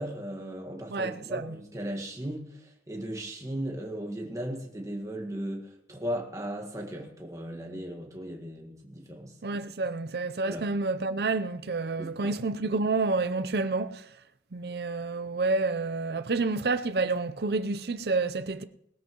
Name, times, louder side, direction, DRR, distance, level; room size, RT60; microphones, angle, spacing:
voice 1, 0.0-9.4 10.4-10.7 12.0-12.3, right 1 dB, 15° right, 1.7 m, -37 dB
voice 2, 0.9-1.6 9.4-14.0 14.5-18.6, right 3 dB, 60° right, 0.6 m, -29 dB
20.5 x 13.0 x 3.1 m
head